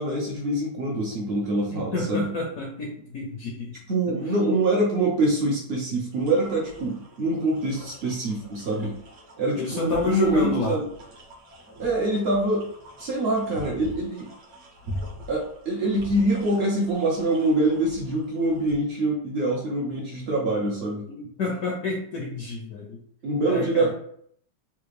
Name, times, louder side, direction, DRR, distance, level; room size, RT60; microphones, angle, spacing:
voice 1, 0.0-2.3 3.9-8.9 9.4-10.8 11.8-12.7 13.0-14.3 15.3-21.0 23.2-23.9, right 2 dB, 80° right, -2 dB, 0.5 m, -25 dB
voice 2, 1.7-3.8 4.3-4.4 9.6-10.8 21.1-23.0 23.5-23.9, left 3 dB, 75° left, -1 dB, 0.8 m, -29 dB
sound 1, 6.1-18.7, left 1 dB, 55° right, 0.8 m, -43 dB
3.5 x 2.4 x 3.2 m, 0.65 s
omnidirectional pair, 2.0 m